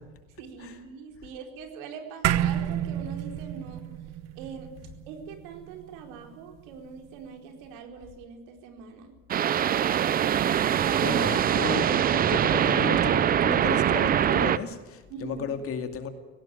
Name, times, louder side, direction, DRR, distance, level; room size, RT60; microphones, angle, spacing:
voice 1, 0.4-3.8 4.4-4.7 5.1-9.1 15.1-15.5, right 6 dB, 80° right, 4 dB, 4.5 m, -43 dB
sound 1, 2.2-6.9, right 11 dB, 45° right, 1.1 m, -30 dB
sound 2, 9.3-14.6, right 9 dB, 25° right, 0.6 m, -23 dB
voice 2, 11.0-16.1, left 6 dB, 40° left, 7 dB, 2.4 m, -34 dB
18.0 x 17.0 x 9.0 m, 1.2 s
cardioid pair, 150°, 37 cm